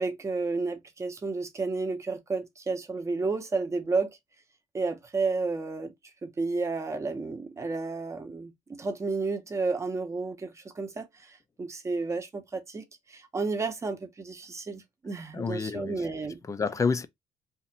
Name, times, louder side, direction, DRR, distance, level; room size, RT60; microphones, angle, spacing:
voice 1, 0.0-4.1 4.7-5.9 6.2-16.4, right 3 dB, 20° right, 0.7 m, -31 dB
voice 2, 15.3-16.1 16.4-17.1, left 5 dB, 25° left, 0.4 m, -29 dB
2.7 x 2.5 x 4.1 m
cardioid pair, 125°, 13 cm